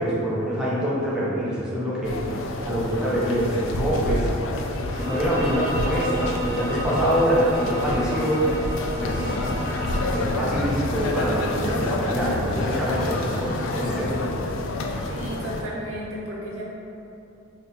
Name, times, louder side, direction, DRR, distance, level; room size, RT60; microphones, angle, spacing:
voice 1, 0.0-2.4 2.7-4.3 4.9-8.4 9.0-9.7 10.1-14.5, equal, 5° right, -8 dB, 0.5 m, -25 dB
sound 1, 2.0-15.6, left 2 dB, 70° left, 0.3 m, -29 dB
Bowed string instrument, 4.8-10.3, right 1 dB, 15° left, 0.9 m, -33 dB
sound 2, 9.0-14.1, equal, 45° left, 0.8 m, -36 dB
voice 2, 15.1-16.6, equal, 85° right, -5 dB, 0.7 m, -33 dB
3.5 x 2.1 x 4.0 m, 2.8 s
head